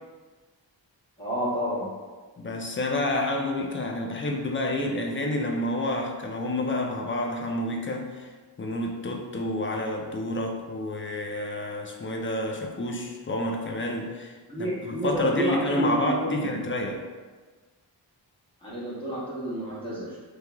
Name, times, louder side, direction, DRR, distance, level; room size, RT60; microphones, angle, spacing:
voice 1, 1.2-1.9 14.5-16.5 18.6-20.2, equal, 10° left, -10 dB, 1.3 m, -30 dB
voice 2, 2.4-8.3 8.6-17.1, left 1 dB, 30° left, 2 dB, 0.4 m, -29 dB
3.1 x 2.8 x 2.2 m, 1.4 s
wide cardioid pair, 60°, 44 cm